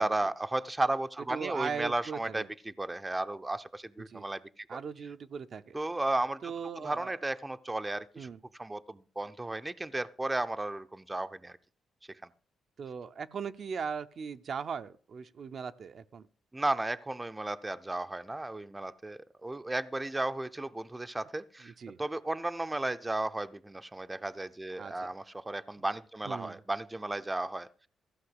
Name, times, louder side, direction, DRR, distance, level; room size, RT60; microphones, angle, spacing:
voice 1, 0.0-4.6 5.7-6.5 6.8-8.3 8.6-11.6 16.5-21.7 22.0-27.9, right 2 dB, 15° right, 0.6 m, -34 dB
voice 2, 1.3-2.5 4.0-4.3 4.7-5.8 6.4-7.1 8.2-8.4 12.8-16.3 21.6-22.0 24.8-25.1 26.2-26.6, right 6 dB, 55° right, 0.6 m, -39 dB
15.0 x 5.6 x 7.9 m
cardioid pair, 85°, 0 cm